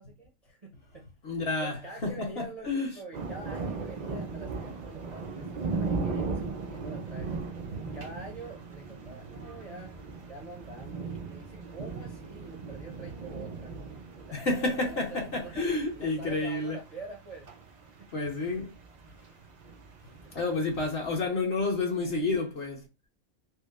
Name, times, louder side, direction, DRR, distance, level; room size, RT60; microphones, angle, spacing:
voice 1, 0.0-1.1 1.6-7.4 7.8-10.0 10.3-13.7 14.3-15.6 16.0-17.5 17.8-18.1 20.1-20.5 21.3-21.4, right 2 dB, 40° right, 0.6 m, -46 dB
voice 2, 1.2-3.0 14.3-16.8 18.1-18.7 20.0-22.9, left 3 dB, 50° left, 1.0 m, -30 dB
sound 1, 3.1-21.2, right 4 dB, 85° right, 0.3 m, -38 dB
4.4 x 2.0 x 2.3 m
omnidirectional pair, 1.5 m